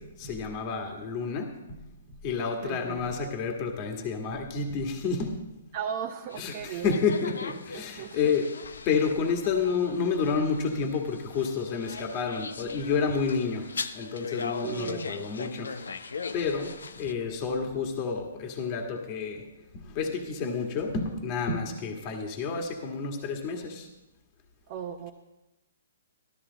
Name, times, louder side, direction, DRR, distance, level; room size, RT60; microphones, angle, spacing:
voice 1, 0.0-1.8 2.2-5.5 6.4-8.5 8.8-13.7 13.9-15.9 16.3-19.4 19.7-23.9, left 5 dB, 35° left, 3 dB, 1.7 m, -30 dB
voice 2, 2.6-3.1 5.7-7.0 7.7-8.3 14.6-15.1 24.7-25.1, right 8 dB, 40° right, 2 dB, 1.0 m, -36 dB
sound 1, 6.3-17.1, left 5 dB, 85° left, 0.8 m, -40 dB
13.5 x 13.0 x 4.1 m, 0.99 s
hypercardioid pair, 145°, 0 cm